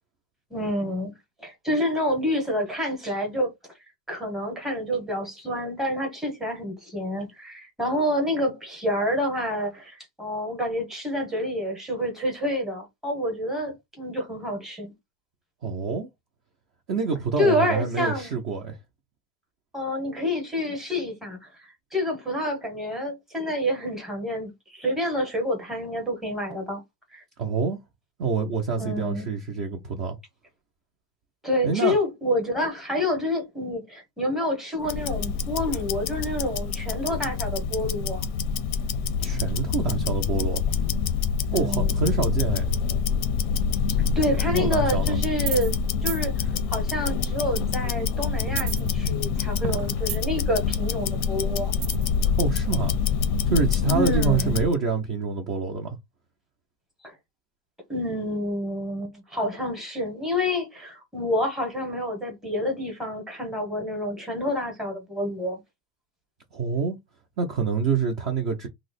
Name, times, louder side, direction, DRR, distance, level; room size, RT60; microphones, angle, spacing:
voice 1, 0.5-1.1 1.4-3.5 4.1-14.9 17.4-18.3 19.7-26.8 27.1-27.2 28.8-29.3 31.4-38.3 41.5-42.0 44.2-51.7 53.9-54.5 57.0-57.1 57.9-65.6, left 1 dB, ahead, 0.7 m, -28 dB
voice 2, 15.6-16.1 16.9-18.8 27.4-27.8 28.2-30.2 31.6-32.0 39.2-40.6 41.5-42.7 44.3-45.2 52.4-52.9 53.5-56.0 66.5-67.0 67.4-68.7, right 5 dB, 35° right, 0.4 m, -26 dB
Tick-tock, 34.8-54.7, left 6 dB, 45° left, 0.4 m, -26 dB
sound 1, 45.4-45.8 46.1-46.2 48.5-49.3 49.6-50.5 51.8-52.2, right 10 dB, 70° right, 0.7 m, -32 dB
2.8 x 2.0 x 3.9 m
supercardioid pair, 150°, 49 cm